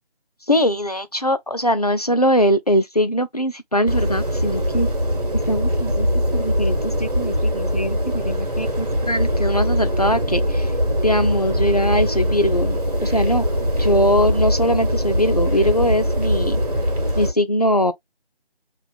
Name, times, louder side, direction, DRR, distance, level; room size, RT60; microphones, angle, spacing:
voice 1, 0.5-4.9 5.5-6.1 6.3-10.7 11.0-13.5 13.8-16.6 17.2-17.9, equal, 40° left, 0.5 m, -21 dB
sound 1, 3.9-17.3, equal, 40° right, 1.5 m, -22 dB
4.5 x 2.9 x 2.4 m
figure-of-eight pair, 165°, 31 cm